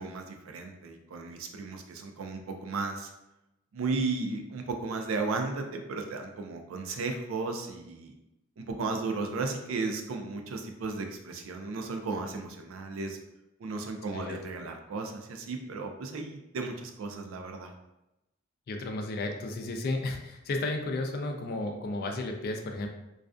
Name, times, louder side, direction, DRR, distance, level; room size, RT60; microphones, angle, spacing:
voice 1, 0.0-3.1 3.7-8.2 8.6-13.2 13.6-17.7, right 3 dB, 75° right, 4 dB, 0.4 m, -35 dB
voice 2, 18.7-22.9, left 2 dB, 50° left, 4 dB, 0.3 m, -33 dB
2.3 x 2.2 x 2.4 m, 0.90 s
head